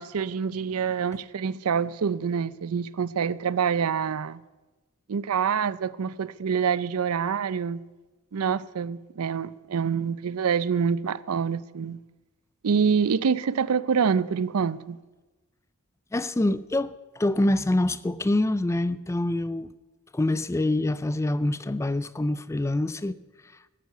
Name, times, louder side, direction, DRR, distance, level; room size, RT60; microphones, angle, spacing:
voice 1, 0.0-4.4 5.1-7.8 8.3-12.0 12.6-15.0, right 6 dB, 85° right, 0.5 m, -26 dB
voice 2, 16.1-19.7 20.1-23.2, left 1 dB, 15° left, 0.4 m, -25 dB
13.5 x 9.5 x 7.9 m
head